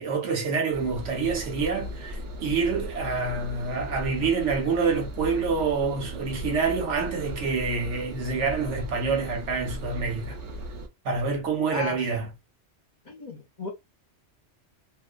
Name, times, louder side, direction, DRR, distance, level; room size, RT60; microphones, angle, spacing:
voice 1, 0.0-10.4 11.0-12.3, right 4 dB, 80° right, 1.1 m, -27 dB
Engine, 0.7-10.9, equal, 60° right, 0.9 m, -37 dB
voice 2, 11.7-12.1 13.0-13.7, left 4 dB, 45° left, 0.8 m, -36 dB
2.6 x 2.1 x 2.5 m
omnidirectional pair, 1.2 m